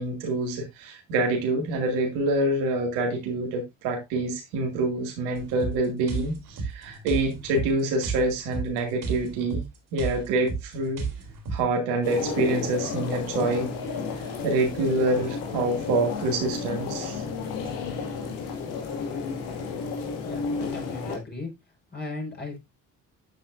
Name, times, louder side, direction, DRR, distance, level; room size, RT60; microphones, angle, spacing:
voice 1, 0.0-9.6 9.9-11.0 11.5-13.7 14.4-17.2, right 2 dB, 75° right, 2.2 m, -26 dB
sound 1, 5.4-11.7, right 4 dB, 55° right, 3.3 m, -33 dB
sound 2, 12.0-21.2, left 5 dB, 70° left, 2.1 m, -32 dB
voice 2, 20.2-21.5 21.9-22.6, left 3 dB, 25° left, 5.2 m, -36 dB
8.7 x 7.9 x 2.6 m
hypercardioid pair, 50°, 39 cm